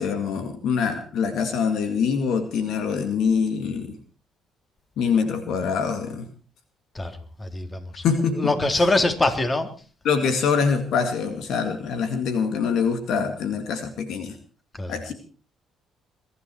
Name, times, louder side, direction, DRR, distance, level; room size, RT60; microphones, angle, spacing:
voice 1, 0.0-3.9 5.0-6.2 8.0-8.5 10.0-14.4 14.9-15.1, left 6 dB, 65° left, 8 dB, 2.2 m, -24 dB
voice 2, 6.9-8.0 8.3-9.7 14.8-15.0, left 2 dB, 25° left, 8 dB, 3.3 m, -24 dB
22.5 x 12.5 x 4.6 m, 0.38 s
hypercardioid pair, 50°, 0 cm